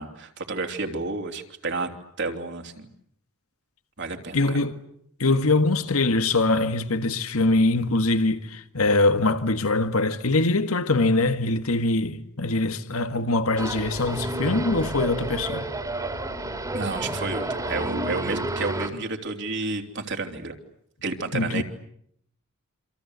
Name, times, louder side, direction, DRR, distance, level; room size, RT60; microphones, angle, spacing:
voice 1, 0.0-1.9 2.2-2.9 4.0-4.6 16.7-20.5 21.0-21.6, right 3 dB, 55° right, 3.3 m, -31 dB
voice 2, 4.3-4.7 5.2-15.7 21.3-21.6, left 2 dB, 75° left, 1.8 m, -23 dB
sound 1, 13.6-18.9, right 1 dB, 15° right, 2.7 m, -30 dB
27.5 x 26.0 x 8.2 m
head